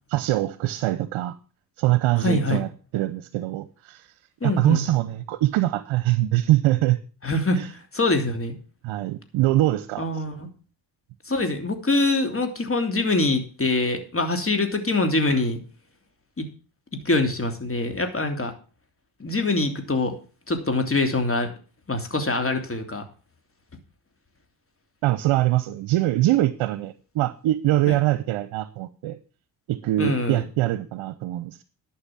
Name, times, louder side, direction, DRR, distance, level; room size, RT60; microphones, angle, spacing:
voice 1, 0.1-1.3 1.8-4.1 4.4-7.0 7.5-7.7 8.8-10.2 25.0-29.2 29.7-31.6, right 15 dB, 70° right, 14 dB, 0.9 m, -23 dB
voice 2, 2.2-2.6 4.4-4.8 7.2-8.6 10.0-10.5 11.2-15.6 16.4-16.5 16.9-18.5 19.2-20.1 20.5-21.5 21.9-23.0 27.9-28.0 30.0-30.4, left 2 dB, 25° left, 6 dB, 3.1 m, -24 dB
11.5 x 6.1 x 7.4 m, 0.37 s
hypercardioid pair, 45°, 50 cm